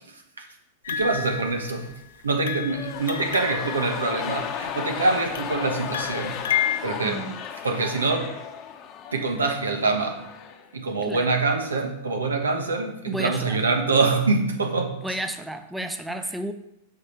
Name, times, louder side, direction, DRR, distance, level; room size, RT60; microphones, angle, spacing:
sound 1, 0.8-2.0 2.4-4.7 5.3-6.8, left 9 dB, 70° left, 0.6 m, -31 dB
voice 1, 0.9-1.9 2.2-6.4 6.8-7.3 7.6-8.3 9.1-10.2 10.7-15.2 16.1-16.3, right 3 dB, 85° right, 4 dB, 1.3 m, -25 dB
sound 2, 2.6-10.7 11.0-11.1, left 8 dB, 40° left, 0.9 m, -35 dB
voice 2, 7.0-7.4 11.1-11.3 13.1-13.6 15.0-16.5, right 1 dB, 5° right, 8 dB, 0.6 m, -31 dB
7.9 x 4.9 x 5.8 m, 0.81 s
hypercardioid pair, 100°, 0 cm